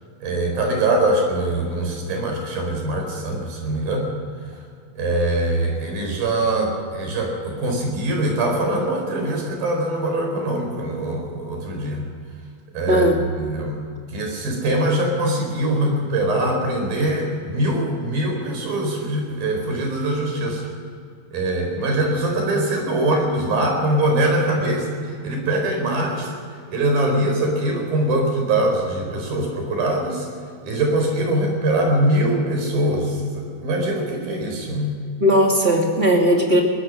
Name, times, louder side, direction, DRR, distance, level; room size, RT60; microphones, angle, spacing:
voice 1, 0.2-4.1 4.9-12.0 12.7-13.1 13.3-13.8 14.1-20.7 21.3-24.9 25.2-26.4 26.7-30.3 30.6-35.0, right 1 dB, 70° right, 2 dB, 6.2 m, -22 dB
voice 2, 12.9-13.2 35.2-36.6, equal, 20° right, 0 dB, 2.1 m, -17 dB
23.0 x 18.5 x 6.4 m, 2.2 s
omnidirectional pair, 4.4 m